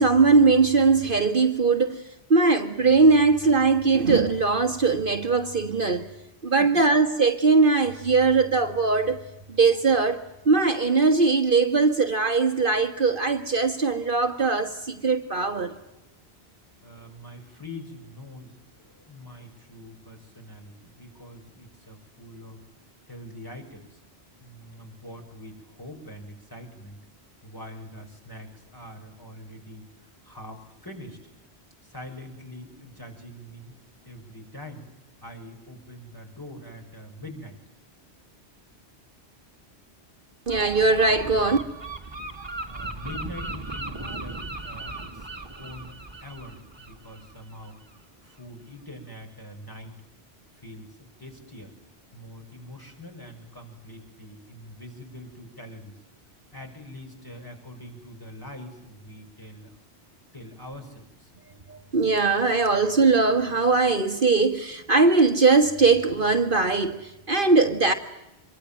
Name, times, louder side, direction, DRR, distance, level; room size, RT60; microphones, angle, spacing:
voice 1, 0.0-2.0 2.3-6.1 6.4-9.2 9.5-15.7 40.5-41.6 61.7-67.9, right 4 dB, 55° right, 1.7 m, -20 dB
voice 2, 6.5-6.8 16.8-22.6 23.1-24.0 24.4-27.0 27.4-31.2 31.8-33.8 34.0-34.9 35.2-37.6 42.6-47.8 48.2-50.0 50.6-51.7 52.1-56.0 56.5-59.8 60.3-61.3, left 1 dB, 20° left, 6.5 m, -44 dB
Gull seagull, 40.5-48.0, right 2 dB, 25° right, 2.2 m, -37 dB
26.0 x 23.5 x 9.0 m
omnidirectional pair, 1.1 m